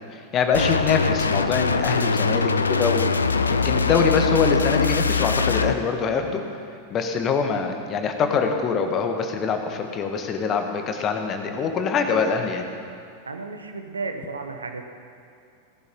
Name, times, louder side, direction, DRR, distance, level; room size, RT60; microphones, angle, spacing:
voice 1, 0.1-6.4 6.9-12.6, left 5 dB, 30° left, 5 dB, 1.5 m, -24 dB
sound 1, 0.5-5.7, left 4 dB, 75° left, 0.6 m, -22 dB
voice 2, 13.2-14.8, right 3 dB, 75° right, 5 dB, 1.3 m, -33 dB
17.0 x 11.0 x 5.4 m, 2.3 s
figure-of-eight pair, 90°, 0 cm